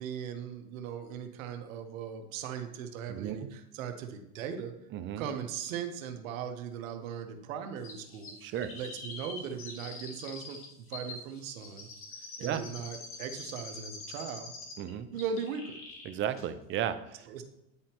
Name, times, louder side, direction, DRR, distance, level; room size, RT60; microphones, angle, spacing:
voice 1, 0.0-4.7 5.2-11.9 12.4-14.5 15.1-15.8 17.3-17.4, right 7 dB, 90° right, 7 dB, 1.0 m, -39 dB
voice 2, 3.1-3.5 4.9-5.3 8.4-8.7 12.4-12.6 14.8-15.1 16.1-17.3, right 10 dB, 30° right, 11 dB, 0.5 m, -34 dB
Chirp tweet, 7.8-14.9 15.2-16.1 16.4-16.5, left 3 dB, 35° left, 1.5 m, -45 dB
9.8 x 4.4 x 2.9 m, 0.85 s
supercardioid pair, 130°, 39 cm